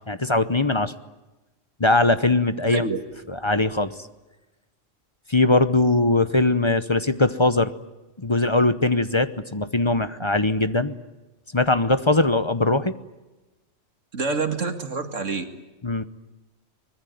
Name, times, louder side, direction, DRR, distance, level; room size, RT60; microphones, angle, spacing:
voice 1, 0.1-0.9 1.8-2.9 3.3-3.9 5.3-7.7 8.2-11.0 11.5-12.9 15.8-16.0, left 2 dB, 25° left, 13 dB, 0.9 m, -21 dB
voice 2, 2.6-3.0 14.1-15.4, right 4 dB, 80° right, 8 dB, 2.6 m, -27 dB
24.0 x 21.0 x 9.3 m, 1.1 s
omnidirectional pair, 1.3 m